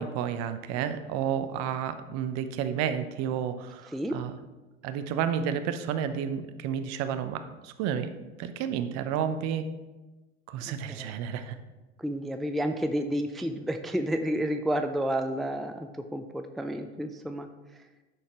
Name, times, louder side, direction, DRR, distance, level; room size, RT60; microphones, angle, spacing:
voice 1, 0.0-4.4 4.8-8.1 8.4-9.7 10.5-11.6, right 8 dB, 50° right, 10 dB, 0.8 m, -31 dB
voice 2, 12.0-17.5, equal, ahead, 7 dB, 0.4 m, -30 dB
10.5 x 6.4 x 3.0 m, 1.1 s
hypercardioid pair, 80°, 33 cm